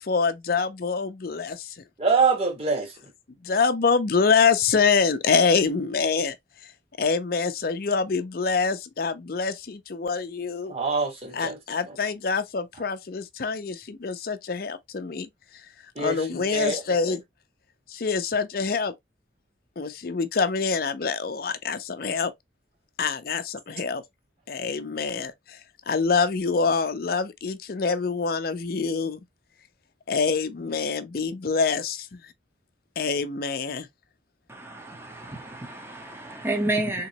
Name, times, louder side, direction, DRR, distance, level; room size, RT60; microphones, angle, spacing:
voice 1, 0.0-1.8 3.4-6.4 7.0-10.7 11.3-15.3 16.0-17.2 17.9-18.9 19.8-22.3 23.0-24.0 24.5-25.6 25.9-29.2 30.1-32.2 33.0-33.9, left 5 dB, 50° left, 0.5 m, -25 dB
voice 2, 2.0-2.9 10.7-11.6 15.9-17.1, right 4 dB, 30° right, 1.6 m, -25 dB
voice 3, 34.5-37.1, right 2 dB, 10° right, 0.8 m, -30 dB
3.7 x 3.0 x 2.9 m
head